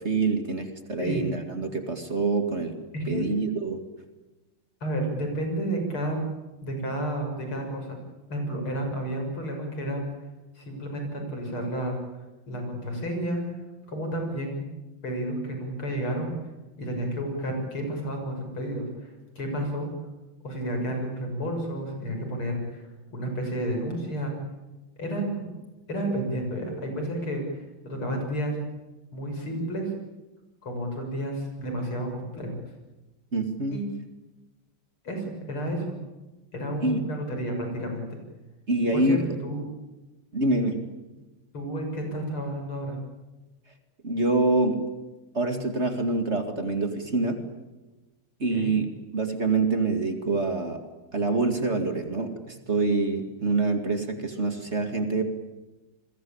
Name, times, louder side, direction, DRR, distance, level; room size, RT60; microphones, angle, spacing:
voice 1, 0.0-2.8 3.1-3.8 33.3-33.8 36.8-37.1 38.7-39.3 40.3-40.8 44.0-44.8 45.3-47.4 48.4-50.8 51.1-55.2, right 3 dB, 30° right, 6 dB, 2.4 m, -26 dB
voice 2, 2.9-3.3 4.8-6.2 6.6-8.0 8.3-10.1 10.6-12.0 12.5-13.6 13.9-14.7 15.0-16.3 16.8-19.9 20.4-24.3 25.0-25.5 25.9-28.6 29.1-29.9 30.6-32.6 33.7-33.9 35.0-36.0 36.5-38.2 38.9-39.6 41.5-43.0 48.5-48.8, right 1 dB, 85° left, 4 dB, 7.3 m, -31 dB
29.5 x 22.0 x 8.7 m, 1.1 s
omnidirectional pair, 2.3 m